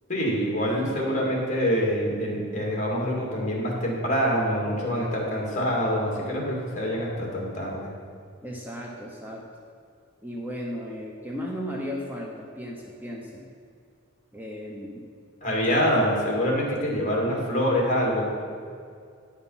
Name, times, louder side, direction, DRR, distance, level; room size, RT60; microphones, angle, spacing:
voice 1, 0.1-7.9 15.4-18.3, equal, 40° left, -2 dB, 2.2 m, -25 dB
voice 2, 0.9-1.3 8.4-9.4 10.2-13.5 14.3-15.0 15.6-15.7, equal, 10° right, -2 dB, 0.8 m, -36 dB
10.0 x 6.0 x 5.6 m, 2.3 s
head